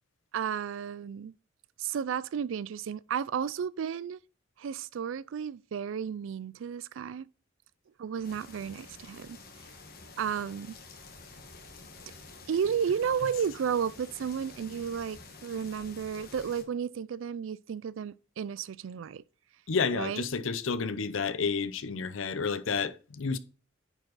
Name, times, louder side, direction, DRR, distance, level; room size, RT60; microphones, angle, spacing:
voice 1, 0.3-1.3 1.8-4.2 4.6-7.3 8.0-9.4 10.2-10.8 12.5-19.2 19.9-20.2, right 7 dB, 75° right, 0.3 m, -33 dB
sound 1, 8.2-16.6, left 3 dB, 50° left, 1.5 m, -49 dB
voice 2, 19.7-23.4, left 5 dB, 75° left, 0.6 m, -30 dB
9.7 x 4.7 x 4.0 m
head